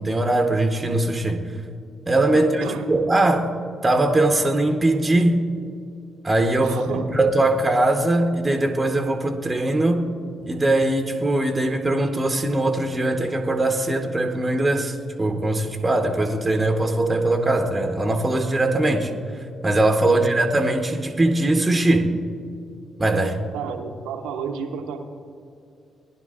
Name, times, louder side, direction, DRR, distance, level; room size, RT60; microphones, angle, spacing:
voice 1, 0.0-1.4 2.1-3.5 3.8-5.5 6.2-10.1 10.4-19.1 19.6-22.1 23.0-23.3, right 2 dB, 25° right, 5 dB, 1.0 m, -21 dB
voice 2, 2.3-2.9 6.6-7.1 20.0-20.2 23.1-25.1, right 6 dB, 75° right, 6 dB, 0.9 m, -32 dB
19.0 x 10.5 x 2.5 m, 2.5 s
hypercardioid pair, 40°, 0 cm